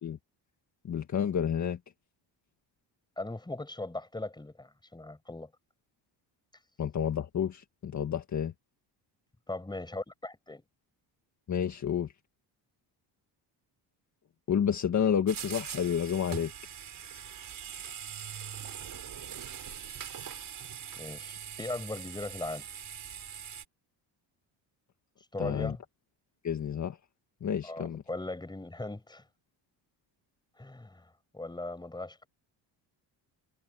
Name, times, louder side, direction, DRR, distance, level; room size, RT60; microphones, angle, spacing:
voice 1, 0.8-1.8 6.8-8.5 11.5-12.1 14.5-16.5 25.4-25.7 26.4-27.0 27.4-28.0, left 8 dB, 40° left, 1.8 m, -30 dB
voice 2, 3.2-5.5 9.5-10.6 20.9-22.7 25.3-25.8 27.6-29.2 30.6-32.3, left 2 dB, 10° left, 5.0 m, -39 dB
sound 1, 15.3-23.7, right 8 dB, 45° right, 5.3 m, -42 dB
cardioid pair, 135°, 45 cm